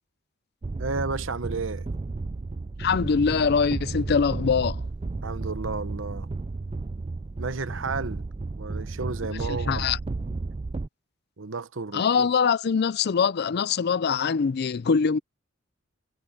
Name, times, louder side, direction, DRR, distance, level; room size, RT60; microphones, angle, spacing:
sound 1, 0.6-10.9, right 3 dB, 25° right, 0.4 m, -33 dB
voice 1, 0.8-1.9 5.2-6.3 7.4-8.2 8.6-9.9 11.4-12.3, right 4 dB, 70° right, 1.0 m, -32 dB
voice 2, 2.8-4.8 9.3-10.0 11.9-15.2, left 6 dB, 50° left, 0.4 m, -23 dB
head